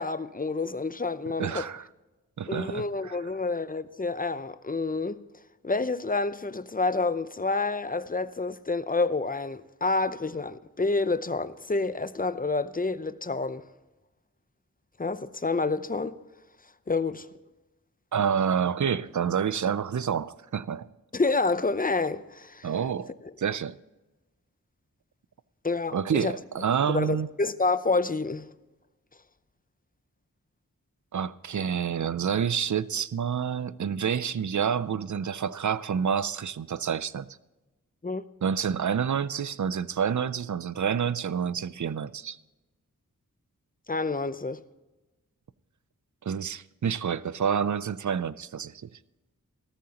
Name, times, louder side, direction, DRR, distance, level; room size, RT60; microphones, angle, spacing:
voice 1, 0.0-1.7 2.5-5.2 5.6-13.6 15.0-16.2 16.9-17.3 21.1-22.7 25.6-26.3 26.9-28.5 38.0-38.2 43.9-44.6, left 3 dB, 25° left, 0.6 m, -28 dB
voice 2, 1.4-1.8 2.4-3.2 18.1-20.9 22.6-23.1 23.4-23.7 25.9-27.3 31.1-37.3 38.4-42.4 46.2-48.7, right 7 dB, 60° right, 0.5 m, -28 dB
17.0 x 13.5 x 3.0 m
wide cardioid pair, 45°, 33 cm